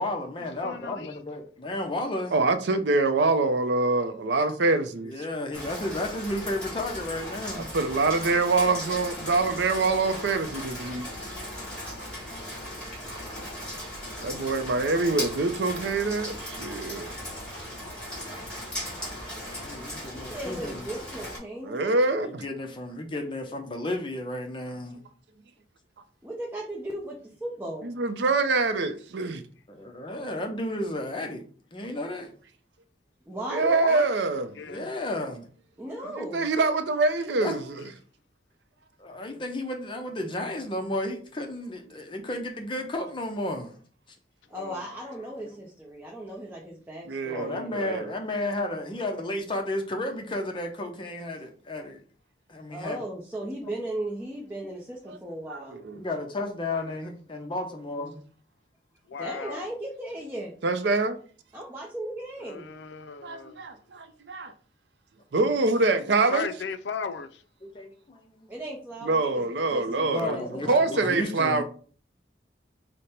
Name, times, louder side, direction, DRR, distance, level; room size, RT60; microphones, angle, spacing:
voice 1, 0.0-2.4 5.0-7.8 19.5-20.8 22.2-25.0 29.7-31.4 31.7-32.3 34.6-35.5 37.4-37.5 39.0-43.8 45.4-45.5 47.3-52.0 52.5-53.0 55.9-58.2 67.6-68.5 69.8-71.6, left 1 dB, 30° left, 0.6 m, -33 dB
voice 2, 0.6-1.2 15.0-15.1 33.6-34.1 34.6-34.8 35.9-36.1 44.5-44.8 56.9-57.0 59.1-59.7 62.4-63.6 66.3-67.4, left 5 dB, 90° left, 0.4 m, -36 dB
voice 3, 2.3-5.1 7.7-11.1 14.2-17.1 21.6-22.4 27.8-29.4 33.5-34.5 36.2-37.6 47.1-48.1 55.1-55.2 55.5-56.0 60.6-61.2 63.2-64.5 65.3-66.5 69.0-70.4 70.6-71.6, right 3 dB, 75° right, 0.5 m, -25 dB
Rain, 5.5-21.4, equal, 5° left, 1.9 m, -37 dB
voice 4, 20.1-22.0 26.2-27.9 33.2-33.8 35.8-36.5 44.5-47.8 52.7-55.8 59.2-60.5 61.5-62.7 68.5-71.3, right 1 dB, 10° right, 0.6 m, -37 dB
5.1 x 2.1 x 4.2 m
head